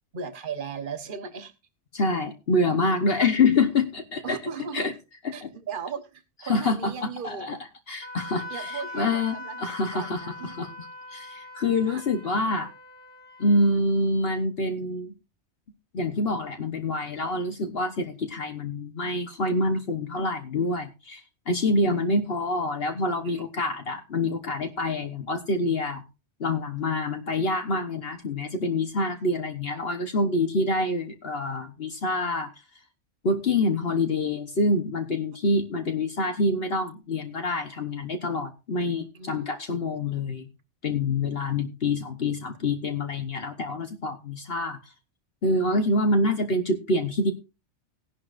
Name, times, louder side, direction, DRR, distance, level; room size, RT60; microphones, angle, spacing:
voice 1, 0.1-1.5 4.2-4.9 5.3-7.6 8.5-9.6 9.9-10.6 11.8-12.0 23.2-23.4 38.8-38.9 39.1-39.4, right 6 dB, 50° right, 9 dB, 1.4 m, -37 dB
voice 2, 1.9-4.4 4.7-4.9 5.2-5.5 6.5-7.6 7.9-12.7 13.4-15.2 15.9-26.0 26.4-32.5 33.2-40.5 40.8-44.8 45.4-47.3, left 2 dB, 60° left, 6 dB, 1.4 m, -26 dB
Wind instrument woodwind instrument, 8.0-13.8, left 2 dB, 15° right, 2.1 m, -41 dB
17.5 x 11.0 x 2.6 m, 0.28 s
omnidirectional pair, 1.2 m